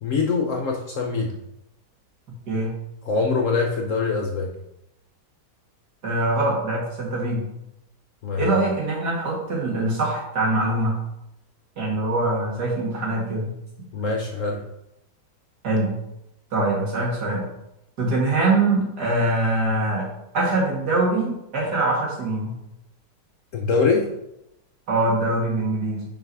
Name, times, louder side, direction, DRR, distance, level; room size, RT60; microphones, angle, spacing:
voice 1, 0.0-1.4 3.0-4.5 8.2-8.5 13.9-14.6 23.5-24.1, left 4 dB, 60° left, 1 dB, 0.9 m, -23 dB
voice 2, 6.0-7.5 8.4-10.9 11.8-13.5 15.6-15.9 16.5-17.4 18.0-20.1 20.3-22.5 24.9-26.0, right 2 dB, 65° right, -3 dB, 2.5 m, -23 dB
5.7 x 4.8 x 4.7 m, 0.83 s
omnidirectional pair, 1.9 m